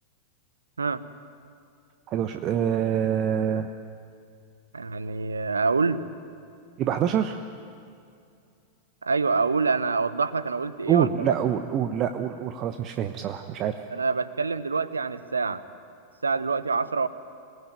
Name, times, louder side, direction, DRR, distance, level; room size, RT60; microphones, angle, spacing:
voice 1, 2.1-3.7 6.8-7.4 10.9-13.7, right 9 dB, 35° right, 8 dB, 1.0 m, -25 dB
voice 2, 4.7-6.0 9.0-11.3 13.9-15.6 16.2-17.1, right 4 dB, 75° right, 15 dB, 0.9 m, -26 dB
27.0 x 19.0 x 9.2 m, 2.4 s
figure-of-eight pair, 90°, 0 cm